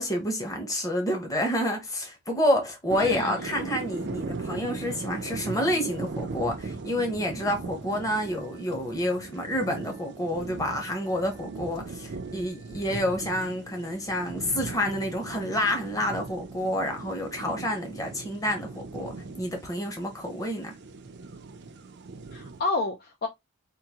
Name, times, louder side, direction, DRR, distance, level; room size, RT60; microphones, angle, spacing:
voice 1, 0.0-20.7, left 1 dB, 15° left, 0.9 m, -29 dB
sound 1, 2.9-22.6, right 3 dB, 50° right, 0.5 m, -39 dB
voice 2, 3.0-3.5 22.3-23.3, left 3 dB, 45° left, 0.4 m, -30 dB
3.7 x 2.6 x 2.8 m
head